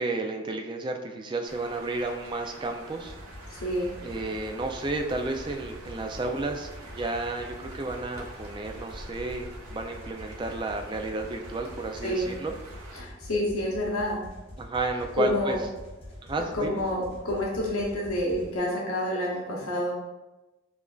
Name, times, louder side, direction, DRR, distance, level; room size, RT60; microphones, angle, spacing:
voice 1, 0.0-3.2 4.0-12.5 14.6-15.6 16.2-16.8, right 2 dB, 20° right, 4 dB, 0.3 m, -32 dB
sound 1, 1.5-13.0, right 2 dB, 85° right, 0.8 m, -46 dB
sound 2, 3.1-18.6, left 1 dB, 25° left, 1.0 m, -45 dB
voice 2, 3.5-3.9 12.0-12.3 12.9-14.2 15.2-15.6 16.5-19.9, left 1 dB, 85° left, -3 dB, 0.9 m, -28 dB
7.0 x 2.5 x 2.3 m, 1.1 s
head